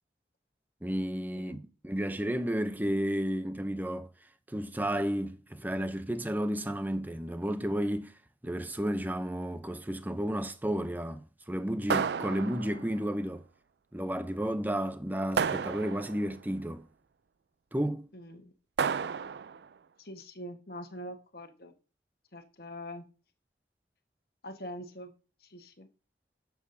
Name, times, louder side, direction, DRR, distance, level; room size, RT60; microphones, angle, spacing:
voice 1, 0.8-4.1 4.5-8.1 8.4-13.4 13.9-16.9 17.7-18.1, equal, 10° right, 0.6 m, -32 dB
sound 1, 11.9-13.0 15.4-16.3 18.8-19.6, right 6 dB, 70° right, 0.4 m, -31 dB
voice 2, 18.1-18.5 20.0-21.7 22.3-23.1 24.4-25.1 25.4-25.9, equal, 55° left, 1.4 m, -44 dB
10.5 x 7.1 x 2.7 m
head